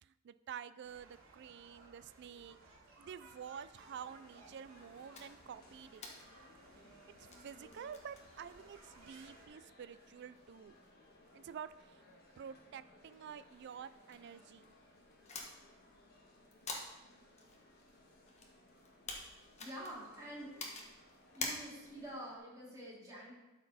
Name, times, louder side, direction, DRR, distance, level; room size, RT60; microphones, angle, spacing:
voice 1, 0.0-2.6 3.0-6.0 7.2-10.7 11.3-12.0 12.4-14.7, right 8 dB, 55° right, 14 dB, 0.3 m, -49 dB
sound 1, 0.8-9.5, right 2 dB, 85° right, 2.1 m, -61 dB
sound 2, 3.7-22.4, left 1 dB, 50° left, 1.5 m, -63 dB
sound 3, 5.1-22.1, left 3 dB, 35° left, 1.2 m, -51 dB
voice 2, 19.6-21.0 21.3-23.3, right 1 dB, 15° right, -5 dB, 2.6 m, -48 dB
12.5 x 4.4 x 4.2 m, 1.0 s
head